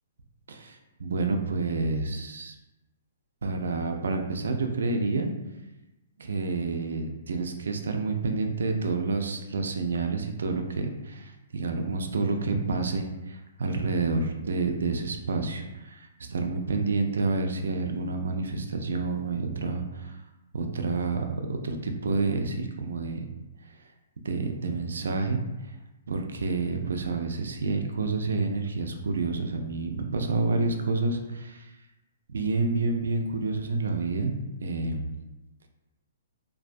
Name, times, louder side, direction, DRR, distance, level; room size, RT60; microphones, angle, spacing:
voice 1, 0.5-2.6 3.4-5.3 6.2-20.2 20.5-23.3 24.2-25.4 26.1-31.7 32.3-35.2, right 3 dB, 80° right, 4 dB, 0.3 m, -29 dB
2.3 x 2.2 x 2.5 m, 1.0 s
hypercardioid pair, 180°, 0 cm